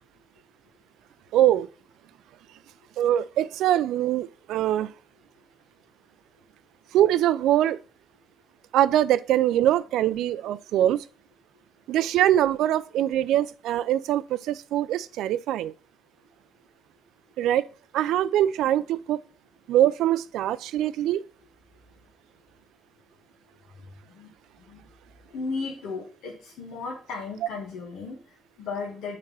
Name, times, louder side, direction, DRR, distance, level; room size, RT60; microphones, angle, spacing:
voice 1, 1.3-1.7 3.0-4.9 6.9-7.8 8.7-11.0 11.9-15.7 17.4-17.7 17.9-19.2 19.7-21.2, right 12 dB, 85° right, 0.4 m, -23 dB
voice 2, 25.3-29.2, left 4 dB, 85° left, 1.7 m, -35 dB
6.6 x 4.2 x 5.5 m
cardioid pair, 90°, 0 cm